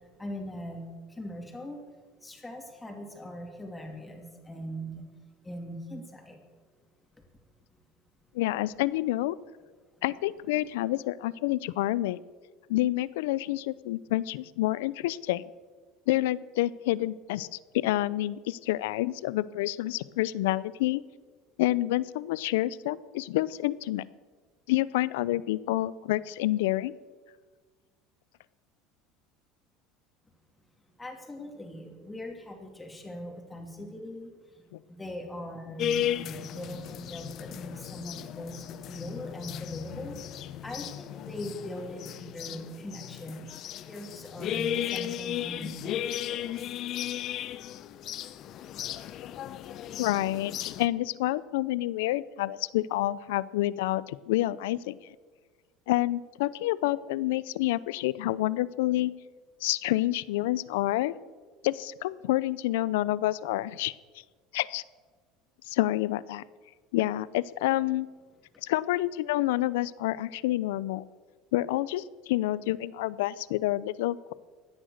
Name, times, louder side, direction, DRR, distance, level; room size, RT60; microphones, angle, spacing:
voice 1, 0.2-1.8 2.2-5.0 5.4-6.4 7.1-7.2 31.0-40.2 40.6-43.5 43.8-46.7 48.1-48.2, equal, 10° left, 3 dB, 2.8 m, -41 dB
voice 2, 8.3-9.4 10.0-12.2 12.7-15.5 16.1-17.5 17.7-21.0 21.6-24.0 24.7-26.9 34.7-34.8 50.0-55.0 55.9-59.1 59.6-61.2 61.6-63.9 64.5-64.8 65.7-66.4 66.9-68.1 68.6-71.0 71.5-74.3, left 16 dB, 90° left, 19 dB, 0.5 m, -28 dB
sound 1, 35.8-50.9, left 11 dB, 50° left, 0.7 m, -35 dB
16.0 x 9.9 x 6.5 m, 1.4 s
supercardioid pair, 115°, 0 cm